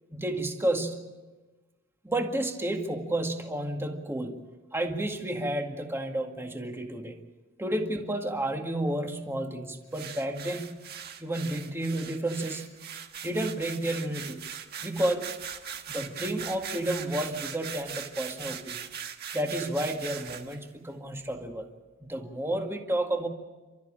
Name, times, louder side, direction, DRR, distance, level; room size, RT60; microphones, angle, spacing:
voice 1, 0.1-1.1 2.0-4.4 4.7-7.2 7.6-10.8 11.2-12.7 13.0-14.4 14.8-15.3 15.9-18.9 19.3-21.7 22.0-23.3, right 1 dB, 10° right, 3 dB, 2.0 m, -31 dB
sound 1, 9.9-20.6, right 8 dB, 50° right, 1.6 m, -40 dB
29.5 x 13.5 x 8.8 m, 1.2 s
head